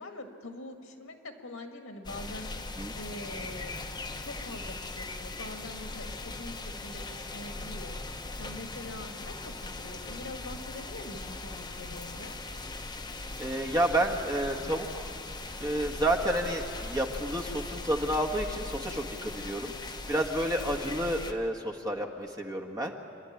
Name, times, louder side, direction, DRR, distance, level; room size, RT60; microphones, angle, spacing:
voice 1, 0.0-2.5 2.9-3.8 4.2-7.9 8.4-12.4, left 2 dB, 80° left, 4 dB, 2.1 m, -44 dB
sound 1, 2.0-21.3, left 2 dB, 20° left, 1.0 m, -39 dB
voice 2, 13.4-15.1 15.6-19.7 20.1-22.9, right 1 dB, 20° right, 1 dB, 1.5 m, -30 dB
27.5 x 12.0 x 9.8 m, 2.6 s
head